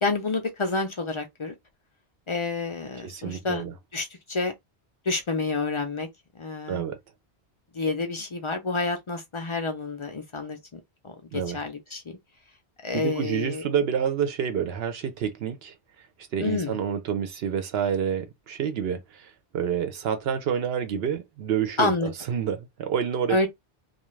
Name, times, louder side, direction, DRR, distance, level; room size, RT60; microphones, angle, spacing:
voice 1, 0.0-1.5 2.3-3.6 3.9-4.5 5.1-6.1 6.4-6.8 7.7-12.2 12.8-13.6 16.4-16.8 21.8-22.1 23.3-23.5, left 3 dB, 40° left, 0.4 m, -29 dB
voice 2, 3.0-3.7 6.7-7.0 11.3-11.6 12.9-15.7 16.3-23.5, right 8 dB, 75° right, 0.8 m, -28 dB
2.3 x 2.2 x 3.1 m
omnidirectional pair, 1.1 m